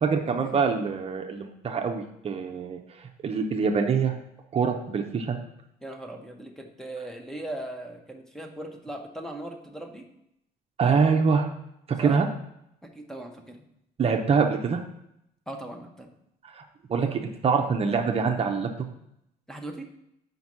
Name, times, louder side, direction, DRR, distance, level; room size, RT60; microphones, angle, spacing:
voice 1, 0.0-2.8 3.2-4.1 4.5-5.4 10.8-11.5 12.0-12.3 14.0-14.8 16.5-16.6 16.9-18.7, right 5 dB, 35° right, 3 dB, 0.6 m, -24 dB
voice 2, 5.8-10.1 12.0-12.2 12.8-13.6 15.5-16.1 19.5-19.9, right 1 dB, 5° left, 3 dB, 0.8 m, -39 dB
5.2 x 4.0 x 5.9 m, 0.79 s
cardioid pair, 110°, 17 cm